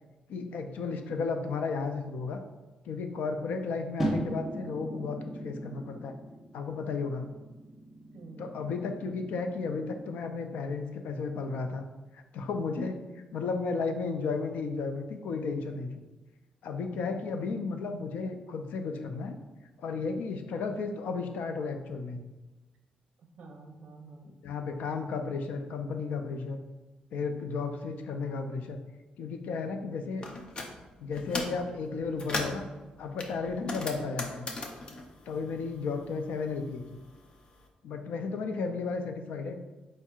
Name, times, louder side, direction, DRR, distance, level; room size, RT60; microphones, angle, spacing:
voice 1, 0.3-2.4 2.9-6.1 6.5-7.3 8.4-11.8 12.1-12.9 13.3-15.9 16.6-19.4 19.8-22.2 24.4-26.6 27.1-28.8 29.2-30.3 31.0-32.7 33.0-34.5 35.3-37.0 37.8-39.5, left 4 dB, 90° left, 6 dB, 0.4 m, -33 dB
sound 1, 4.0-10.2, right 1 dB, 5° right, 0.7 m, -38 dB
voice 2, 8.1-8.6 9.0-9.1 12.7-13.1 16.9-17.6 23.4-24.4 33.5-33.8 38.1-38.3, right 3 dB, 55° right, 2 dB, 0.7 m, -48 dB
sound 2, 30.2-30.7 31.1-31.6 32.0-32.7 33.2-36.1 36.4-37.5, left 2 dB, 35° left, 0.5 m, -37 dB
4.6 x 4.4 x 2.3 m, 1.1 s
wide cardioid pair, 170°, 3 cm